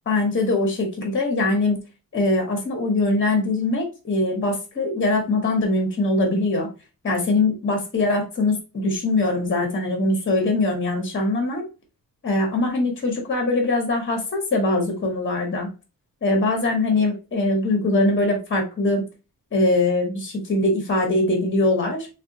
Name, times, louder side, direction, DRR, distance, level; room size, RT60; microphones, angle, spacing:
voice 1, 0.1-1.8 2.1-6.7 7.0-11.6 12.2-15.7 16.2-19.1 19.5-22.1, left 2 dB, 35° left, 2 dB, 0.8 m, -22 dB
3.5 x 2.2 x 2.6 m, 0.31 s
wide cardioid pair, 165°, 35 cm